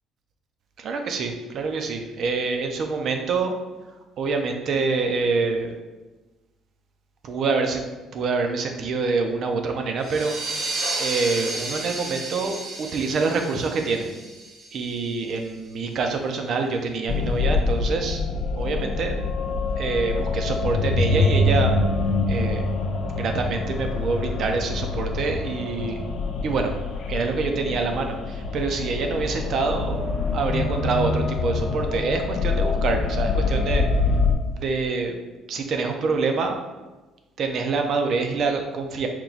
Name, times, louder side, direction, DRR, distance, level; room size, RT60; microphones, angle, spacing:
voice 1, 0.8-3.6 4.2-5.7 7.2-7.9 8.1-14.1 14.7-18.2 18.6-19.2 19.8-21.7 22.3-22.7 23.2-26.0 26.4-26.7 27.1-33.9 34.5-35.1 35.5-36.5 37.4-39.1, right 4 dB, 55° right, 4 dB, 0.6 m, -26 dB
sound 1, 10.0-15.3, right 2 dB, 70° right, 1.1 m, -32 dB
sound 2, 17.1-34.3, left 3 dB, 65° left, 0.5 m, -25 dB
4.5 x 2.3 x 3.9 m, 1.2 s
cardioid pair, 105°, 0 cm